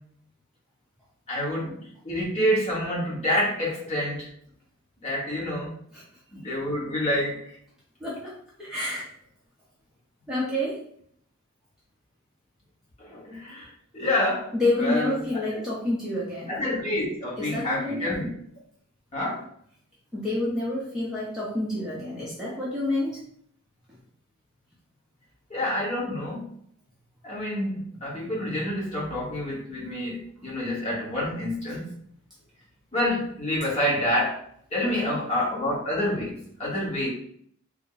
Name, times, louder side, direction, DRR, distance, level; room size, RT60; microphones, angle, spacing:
voice 1, 1.3-1.8 2.0-4.3 5.0-5.7 6.3-7.4 13.0-13.7 13.9-14.5 14.8-15.6 16.5-18.3 19.1-19.4 25.5-26.5 27.2-31.9 32.9-34.4 34.7-37.1, left 1 dB, 30° left, -6 dB, 1.3 m, -28 dB
voice 2, 8.0-8.3 8.6-9.1 10.3-10.8 14.5-16.6 17.4-18.1 20.1-23.2 23.9-24.0 28.4-28.5 34.8-35.2, left 1 dB, 5° right, -8 dB, 0.7 m, -28 dB
3.5 x 2.2 x 3.8 m, 0.65 s
head